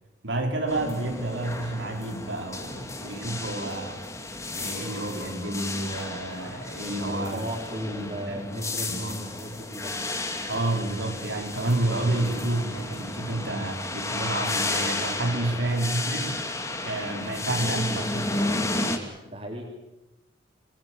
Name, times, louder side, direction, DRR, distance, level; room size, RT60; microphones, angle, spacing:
voice 1, 0.2-4.0 4.6-7.5 7.9-8.5 8.9-9.2 10.5-16.4 16.8-19.0, right 2 dB, 85° right, 2 dB, 4.8 m, -30 dB
sound 1, 0.7-19.0, left 2 dB, 15° left, 2.4 m, -33 dB
voice 2, 7.0-10.1 15.4-15.7 19.2-19.6, equal, 35° right, -3 dB, 4.1 m, -36 dB
26.0 x 21.5 x 7.9 m, 1.0 s
head